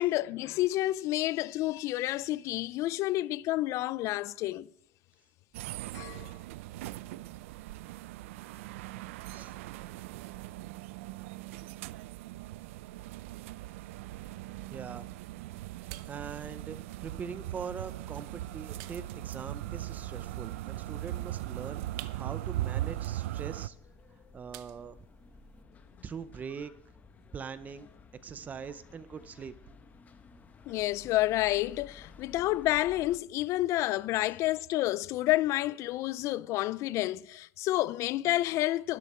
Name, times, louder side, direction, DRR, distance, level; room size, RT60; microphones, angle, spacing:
voice 1, 0.0-4.7 5.9-6.3 30.7-39.0, left 16 dB, 45° left, 0.4 m, -29 dB
sound 1, 5.5-23.7, right 15 dB, 90° right, 0.4 m, -39 dB
sound 2, 13.6-25.6, right 15 dB, 60° right, 0.7 m, -55 dB
voice 2, 14.7-15.1 16.1-23.8 24.3-25.0 26.0-26.7 27.3-27.9 28.2-29.5, right 6 dB, 25° right, 0.5 m, -42 dB
sound 3, 17.9-33.2, left 5 dB, 25° left, 0.9 m, -55 dB
12.0 x 10.5 x 4.2 m
supercardioid pair, 140°, 7 cm